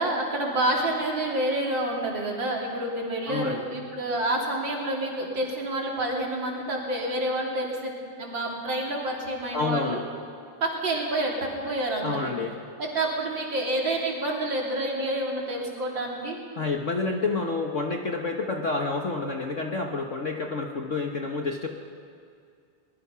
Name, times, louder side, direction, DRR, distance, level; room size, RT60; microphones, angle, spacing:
voice 1, 0.0-7.9 8.2-10.0 10.6-12.3 12.8-16.4, right 1 dB, 60° right, -1 dB, 3.7 m, -28 dB
voice 2, 3.3-3.6 9.5-10.0 12.0-12.5 16.6-21.7, left 3 dB, 45° left, 2 dB, 1.2 m, -29 dB
23.5 x 20.0 x 5.7 m, 2.3 s
omnidirectional pair, 2.3 m